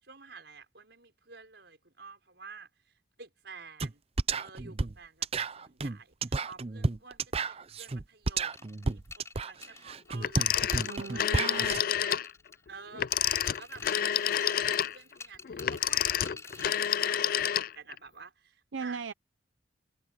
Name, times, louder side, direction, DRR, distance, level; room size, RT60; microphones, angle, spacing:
voice 1, 0.0-4.0 4.4-12.3 12.7-19.0, right 5 dB, 65° right, 6.1 m, -51 dB
sound 1, 3.8-3.9 4.2-11.8, right 3 dB, 30° right, 0.6 m, -32 dB
sound 2, 8.5-11.8 12.1-12.8 13.1-17.0, left 3 dB, 15° left, 3.0 m, -49 dB
Telephone, 10.2-12.3 12.9-18.0, left 10 dB, 50° left, 0.4 m, -29 dB
voice 2, 10.9-11.8 18.7-19.1, right 5 dB, 80° right, 0.6 m, -38 dB
head